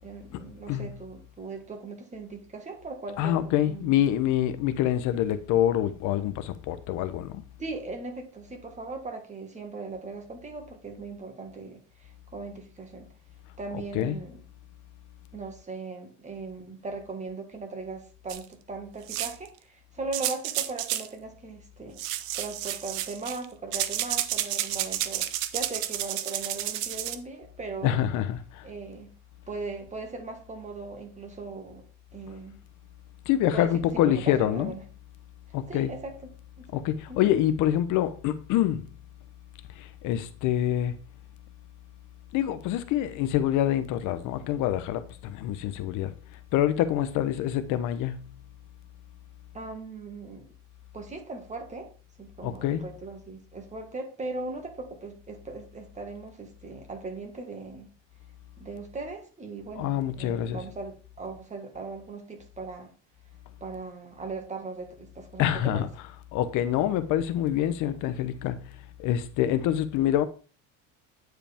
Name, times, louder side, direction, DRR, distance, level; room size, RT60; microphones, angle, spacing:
voice 1, 0.0-4.0 7.6-13.1 13.6-14.4 15.3-22.0 22.4-25.3 25.5-28.1 28.6-29.1 29.5-31.8 32.1-32.6 33.5-34.8 35.7-36.3 36.6-36.8 37.1-37.2 49.5-50.5 50.9-51.9 52.2-57.9 58.6-62.9 63.6-65.9, right 3 dB, 20° right, 1.6 m, -39 dB
voice 2, 3.2-7.4 13.9-14.2 27.8-28.7 33.3-34.7 35.5-35.9 36.7-38.9 39.8-41.0 42.3-46.1 46.5-48.3 52.4-52.8 59.8-60.6 65.4-65.9 66.3-70.2, left 11 dB, 65° left, 0.7 m, -26 dB
sound 1, 18.3-18.4 19.1-19.5 20.1-21.1 22.0-23.5 23.7-27.2, right 13 dB, 85° right, 0.8 m, -31 dB
8.9 x 4.8 x 3.5 m
cardioid pair, 130°, 33 cm